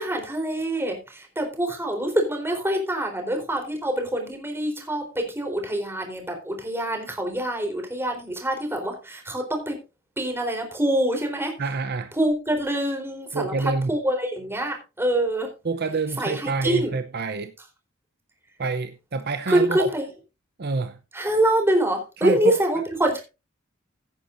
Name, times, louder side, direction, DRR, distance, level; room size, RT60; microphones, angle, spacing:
voice 1, 0.0-9.8 10.2-11.5 12.2-13.5 13.9-15.5 16.2-16.9 19.5-20.1 21.1-23.2, right 1 dB, 10° right, 4.0 m, -25 dB
voice 2, 11.6-12.1 13.3-13.9 15.6-17.5 18.6-19.9 20.6-21.0 22.2-22.6, right 3 dB, 50° right, 0.8 m, -27 dB
16.5 x 9.8 x 2.7 m
head